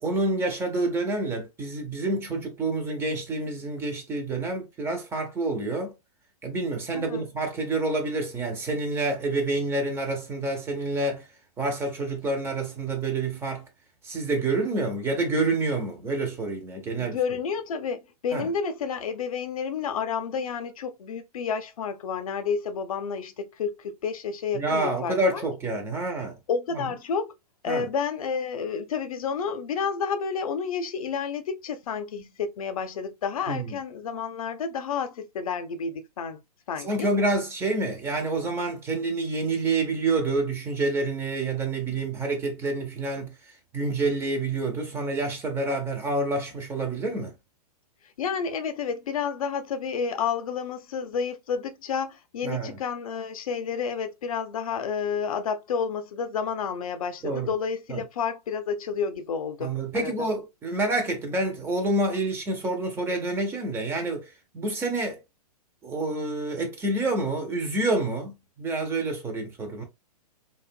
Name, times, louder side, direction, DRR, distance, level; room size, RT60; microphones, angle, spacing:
voice 1, 0.0-5.9 6.4-11.3 11.6-13.6 14.0-17.2 18.3-18.5 24.5-26.4 26.7-26.8 27.7-27.9 33.5-33.8 36.8-43.3 43.7-47.3 52.4-52.8 57.2-57.5 57.9-58.0 59.6-65.2 65.8-69.8, right 2 dB, 10° right, 0.4 m, -28 dB
voice 2, 6.9-7.3 16.8-25.4 26.5-27.3 27.6-36.4 36.7-37.1 48.2-60.3, left 6 dB, 60° left, 0.5 m, -30 dB
2.4 x 2.1 x 2.4 m
figure-of-eight pair, 115°, 20 cm